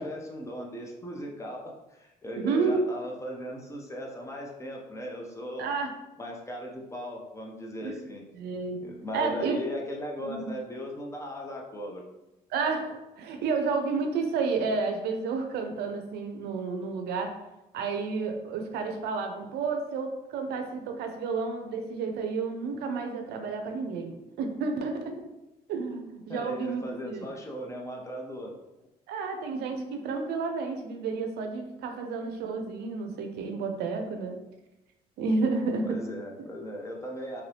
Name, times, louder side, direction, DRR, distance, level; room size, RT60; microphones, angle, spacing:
voice 1, 0.0-5.7 6.2-8.2 8.8-12.0 26.3-28.6 35.8-37.4, equal, 15° left, -1 dB, 0.6 m, -37 dB
voice 2, 2.4-2.8 5.6-5.9 7.8-8.0 8.4-8.8 9.1-9.6 10.2-10.6 12.5-17.3 17.7-25.1 25.7-27.3 29.1-34.4 35.2-36.0, right 4 dB, 75° right, 5 dB, 0.5 m, -31 dB
2.8 x 2.6 x 3.3 m, 0.96 s
cardioid pair, 110°, 17 cm